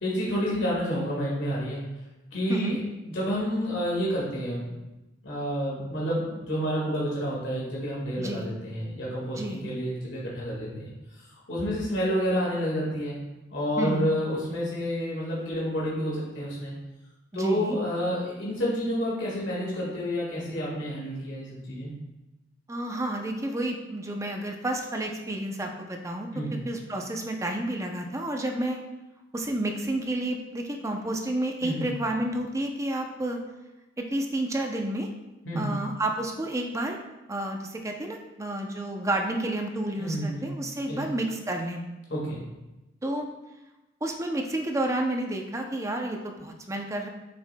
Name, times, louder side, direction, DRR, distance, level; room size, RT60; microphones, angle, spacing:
voice 1, 0.0-1.8 2.3-2.8 3.1-4.7 5.2-11.2 11.5-13.2 13.5-16.7 17.3-21.9 26.3-26.6 31.6-31.9 35.4-35.8 40.0-40.5 40.9-41.0 42.1-42.4, equal, 75° left, -5 dB, 1.8 m, -29 dB
voice 2, 8.2-8.5 9.3-9.6 13.8-14.2 17.3-17.8 22.7-28.8 29.3-33.4 34.0-35.1 35.5-37.0 37.3-41.8 43.0-43.3 44.0-47.1, right 1 dB, 15° right, 3 dB, 0.5 m, -30 dB
7.6 x 6.0 x 2.2 m, 1.0 s
head